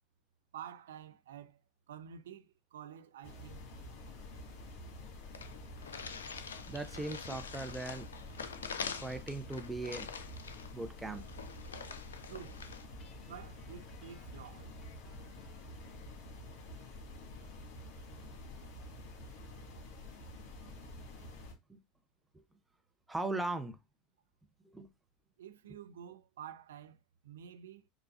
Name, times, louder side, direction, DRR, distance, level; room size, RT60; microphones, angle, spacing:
voice 1, 0.5-1.6 1.9-3.7 12.3-12.7 13.2-14.8 25.4-27.9, right 9 dB, 75° right, 0.4 m, -50 dB
sound 1, 3.2-21.5, left 1 dB, 60° left, 1.4 m, -49 dB
sound 2, 5.0-5.1 5.3-12.9, left 6 dB, 80° left, 0.4 m, -45 dB
voice 2, 6.7-8.1 9.0-10.1 10.7-11.2 21.7-21.8 23.1-23.8 24.6-24.9, right 2 dB, 10° right, 0.7 m, -38 dB
Guitar, 13.0-16.2, left 5 dB, 45° left, 1.0 m, -64 dB
6.7 x 2.4 x 2.4 m
hypercardioid pair, 75°, 0 cm